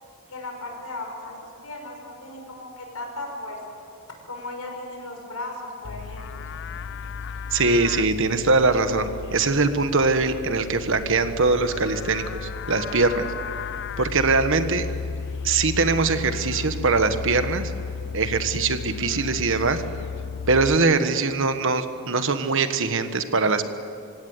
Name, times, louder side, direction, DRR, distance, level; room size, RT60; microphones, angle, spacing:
voice 1, 0.3-3.6 4.3-6.5, left 2 dB, 80° left, 2 dB, 6.0 m, -36 dB
Livestock farm animals working animals, 5.8-20.8, left 5 dB, 55° left, 0.6 m, -34 dB
voice 2, 7.5-13.3 14.0-14.9 15.4-17.7 18.1-19.8 20.5-23.7, right 3 dB, 60° right, 9 dB, 1.4 m, -22 dB
25.5 x 17.0 x 9.4 m, 2.5 s
head